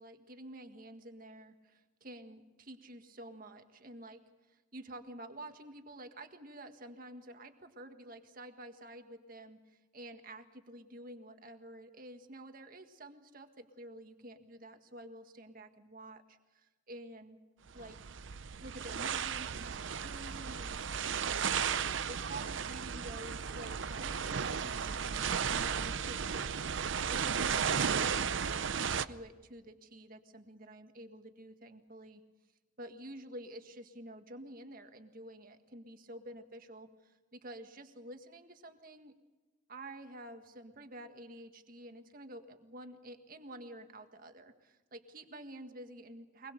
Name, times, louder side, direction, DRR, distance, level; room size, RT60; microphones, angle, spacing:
voice 1, 0.0-4.2 4.5-17.4 17.7-18.0 18.6-26.7 27.0-32.2 32.8-39.1 39.7-46.5, right 1 dB, 45° right, 6 dB, 1.7 m, -50 dB
sound 1, 17.7-29.0, right 7 dB, 70° right, 0.7 m, -34 dB
23.5 x 21.0 x 6.7 m, 1.2 s
head